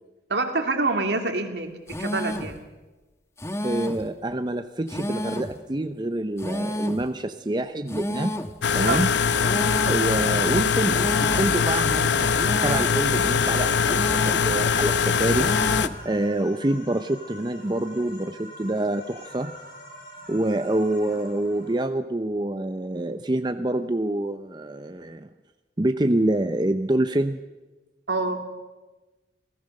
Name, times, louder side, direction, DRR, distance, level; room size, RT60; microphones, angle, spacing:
voice 1, 0.3-1.7 2.0-2.6 8.8-9.1 28.1-28.4, right 3 dB, 70° right, 5 dB, 2.6 m, -26 dB
sound 1, 1.9-2.6 3.4-4.1 4.9-5.6 6.4-7.1 7.9-8.6 9.4-10.1 10.9-11.6 12.3-13.0 13.8-14.5 15.3-16.0, equal, 15° left, 1.1 m, -31 dB
voice 2, 3.6-8.4 8.7-9.1 9.9-15.5 16.0-19.5 20.3-25.3 25.8-27.4, right 1 dB, 25° right, 8 dB, 0.7 m, -26 dB
sound 2, 8.6-15.9, left 6 dB, 70° left, 0.8 m, -22 dB
sound 3, 10.9-21.8, left 1 dB, 50° left, 7.2 m, -45 dB
26.5 x 17.5 x 6.6 m, 1.2 s
head